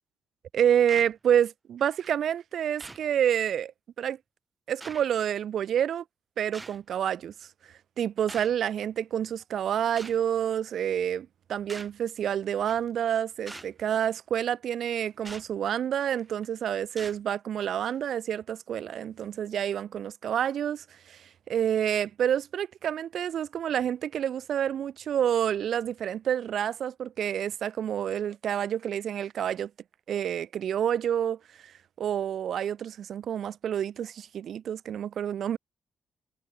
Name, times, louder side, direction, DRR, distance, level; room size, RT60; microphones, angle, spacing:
voice 1, 0.5-3.7 4.0-4.2 4.7-6.0 6.4-7.3 8.0-29.7 30.1-31.7 32.0-35.6, right 9 dB, 70° right, 1.4 m, -28 dB
sound 1, 0.9-1.1 2.0-2.1 2.8-3.0 4.0-4.1 4.8-5.0 6.5-6.8 8.3-8.5 10.0-10.2 11.7-12.0 12.7-12.9 13.5-13.7 15.2-15.5 16.2-16.4 17.0-17.2 17.9-18.0, right 2 dB, 20° right, 3.5 m, -43 dB
cardioid pair, 95°, 0 cm